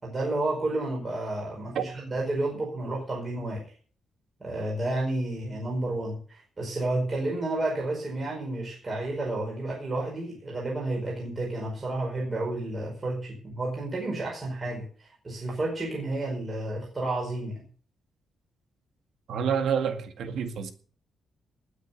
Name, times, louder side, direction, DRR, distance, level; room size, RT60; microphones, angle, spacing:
voice 1, 0.0-3.6 4.4-14.8 15.2-17.6, right 2 dB, 20° right, 4.9 m, -31 dB
voice 2, 19.3-20.7, right 7 dB, 65° right, 1.9 m, -28 dB
19.5 x 6.7 x 6.9 m
wide cardioid pair, 180°, 0 cm